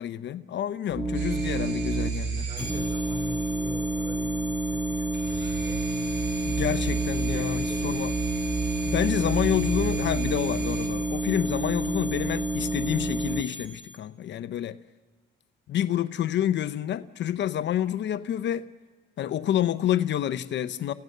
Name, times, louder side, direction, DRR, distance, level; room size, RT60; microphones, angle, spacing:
voice 1, 0.0-2.5 6.5-8.1 8.9-14.8 15.7-18.7 19.2-20.9, left 11 dB, 65° left, 0.7 m, -28 dB
sound 1, 0.9-2.1 2.6-13.4, right 2 dB, 5° right, 1.6 m, -29 dB
sound 2, 1.1-3.5 5.1-10.9, right 5 dB, 60° right, 3.6 m, -33 dB
voice 2, 2.5-5.9 7.3-8.2, left 1 dB, 25° right, 3.9 m, -42 dB
sound 3, 2.6-14.0, left 2 dB, 45° left, 2.4 m, -41 dB
28.5 x 16.0 x 6.6 m
cardioid pair, 90°, 20 cm